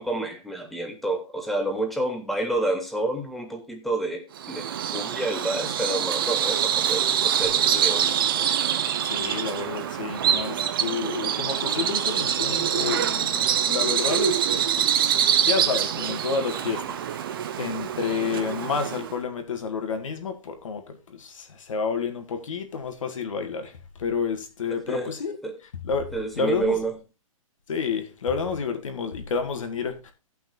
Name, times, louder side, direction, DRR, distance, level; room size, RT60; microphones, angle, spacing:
voice 1, 0.0-4.6 4.9-8.2 24.9-25.1 25.4-25.6 26.1-26.9, right 2 dB, ahead, 0.7 m, -29 dB
Bird vocalization bird call bird song, 4.4-19.2, right 9 dB, 40° right, 0.8 m, -25 dB
voice 2, 9.0-17.3 17.6-26.9 27.7-30.1, left 5 dB, 65° left, 2.0 m, -30 dB
17.0 x 5.8 x 2.7 m
hypercardioid pair, 170°, 18 cm